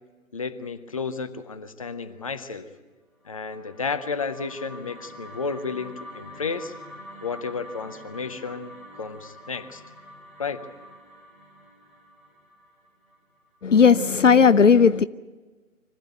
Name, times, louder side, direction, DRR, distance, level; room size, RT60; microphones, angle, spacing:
voice 1, 0.3-2.7 3.2-6.7 7.2-9.8 10.4-10.7, left 5 dB, 25° left, 9 dB, 0.7 m, -32 dB
sound 1, 3.2-13.5, equal, ahead, 1.7 m, -46 dB
voice 2, 13.6-15.0, left 6 dB, 65° left, 16 dB, 0.6 m, -16 dB
25.5 x 15.5 x 9.1 m, 1.3 s
figure-of-eight pair, 150°, 41 cm